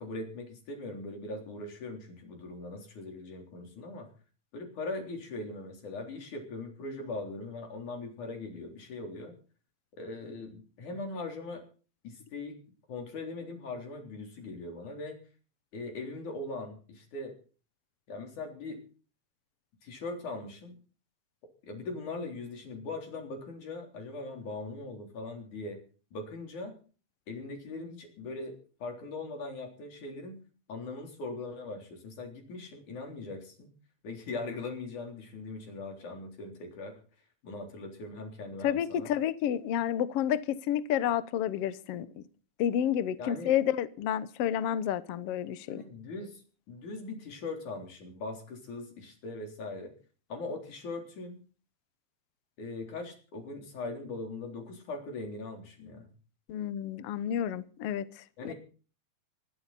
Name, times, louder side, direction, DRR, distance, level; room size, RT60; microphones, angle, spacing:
voice 1, 0.0-4.1 4.5-9.4 10.0-11.6 12.0-12.6 12.9-15.2 15.7-17.4 18.1-18.8 19.8-20.8 21.6-25.8 26.1-26.7 27.3-30.4 30.7-33.7 34.0-37.0 37.4-39.1 43.2-43.5 45.7-49.9 50.3-51.4 52.6-56.1 58.4-58.5, left 3 dB, 60° left, 5.1 m, -40 dB
voice 2, 38.6-42.2 42.6-45.8 56.5-58.0 58.4-58.5, left 10 dB, 80° left, 1.3 m, -30 dB
24.0 x 12.5 x 4.1 m
omnidirectional pair, 4.1 m